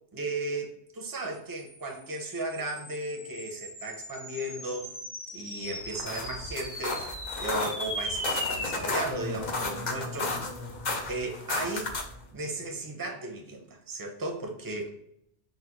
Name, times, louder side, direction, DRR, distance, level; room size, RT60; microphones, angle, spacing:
voice 1, 0.1-4.9 5.3-10.4 11.1-11.9 12.3-14.9, right 2 dB, 25° right, 2 dB, 0.5 m, -35 dB
sound 1, 1.6-12.3, left 1 dB, 15° left, 0.7 m, -39 dB
sound 2, 5.8-12.2, left 3 dB, 45° left, 0.6 m, -34 dB
4.0 x 2.3 x 4.4 m, 0.74 s
omnidirectional pair, 1.3 m